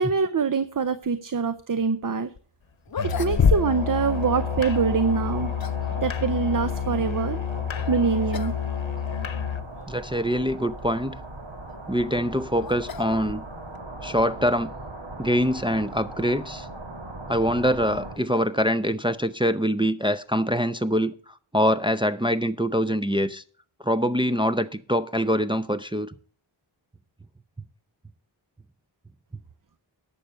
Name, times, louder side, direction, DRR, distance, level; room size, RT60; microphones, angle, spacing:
voice 1, 0.0-2.3 3.0-5.5 6.0-7.4 7.9-8.5, right 5 dB, 45° right, 0.7 m, -24 dB
sound 1, 2.4-2.5 2.9-4.3 5.2-5.9 7.7-8.0 8.3-8.6 8.9-9.0 9.8-9.9 11.7-13.8, left 6 dB, 50° left, 0.7 m, -27 dB
Musical instrument, 3.0-9.7, left 8 dB, 80° left, 0.9 m, -30 dB
sound 2, 3.6-18.2, right 2 dB, 70° right, 2.3 m, -39 dB
voice 2, 9.9-11.1 11.9-13.4 14.0-14.7 15.2-16.7 17.3-21.1 21.5-23.4 23.8-26.1, equal, 10° right, 0.5 m, -24 dB
11.5 x 6.9 x 6.3 m
wide cardioid pair, 45°, 46 cm